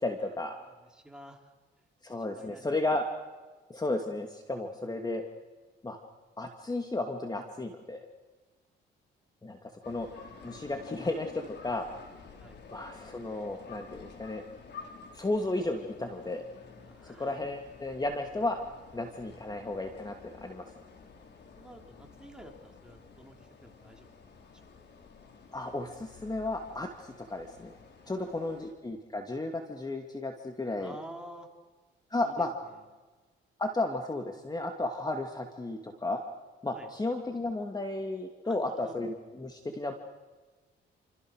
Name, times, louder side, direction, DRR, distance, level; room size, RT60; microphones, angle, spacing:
voice 1, 0.0-0.6 2.0-3.0 3.7-5.2 5.8-6.0 6.4-8.1 9.4-9.6 9.9-10.1 10.4-11.8 12.7-14.4 15.1-16.5 17.0-18.6 18.9-20.2 20.4-20.6 25.5-27.7 28.1-31.0 32.1-32.5 33.6-36.2 36.6-39.9, left 2 dB, 20° left, 4 dB, 2.6 m, -33 dB
voice 2, 0.6-1.5 2.3-2.7 9.5-9.9 12.4-12.6 16.8-17.3 21.6-24.1 28.0-28.5 30.8-31.5 32.2-32.5 36.7-36.9 38.4-39.0, right 1 dB, 5° right, 2 dB, 4.6 m, -50 dB
sound 1, 9.8-28.7, left 5 dB, 60° left, 5.0 m, -51 dB
29.5 x 27.0 x 6.5 m, 1.3 s
cardioid pair, 90°, 20 cm